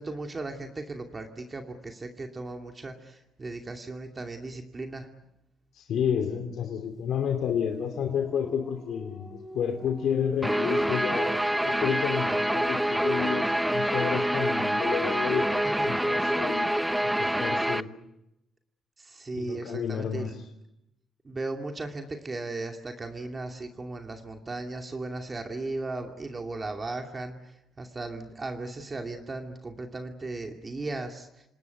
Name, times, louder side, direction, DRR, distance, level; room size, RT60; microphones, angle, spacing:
voice 1, 0.0-5.1 15.8-16.0 19.0-20.4 21.2-31.4, right 2 dB, 30° right, 4 dB, 2.5 m, -36 dB
voice 2, 5.7-17.9 19.3-20.5, left 8 dB, 75° left, 4 dB, 2.6 m, -31 dB
sound 1, 7.0-11.8, left 2 dB, 20° left, 7.0 m, -45 dB
Guitar, 10.4-17.8, right 1 dB, 5° right, 0.9 m, -26 dB
27.5 x 19.0 x 9.4 m, 0.88 s
cardioid pair, 90°, 0 cm